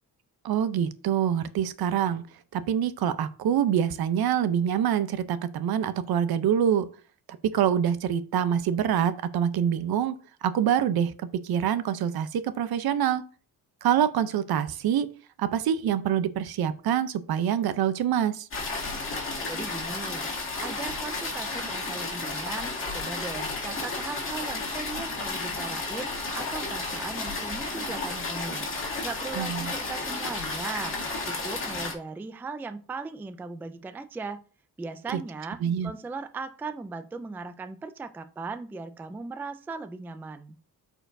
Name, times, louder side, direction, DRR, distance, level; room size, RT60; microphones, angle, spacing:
voice 1, 0.4-2.3 2.5-6.9 7.4-10.2 10.4-13.2 13.8-15.1 15.4-18.5 29.4-29.7 35.1-35.2 35.6-35.9, right 9 dB, 70° right, 13 dB, 0.7 m, -25 dB
sound 1, 18.5-31.9, left 3 dB, 30° left, 2.2 m, -32 dB
voice 2, 19.5-20.3 20.6-28.6 29.0-31.0 31.2-34.4 34.8-40.6, right 4 dB, 5° right, 9 dB, 0.3 m, -38 dB
13.5 x 4.5 x 2.6 m, 0.40 s
cardioid pair, 150°, 39 cm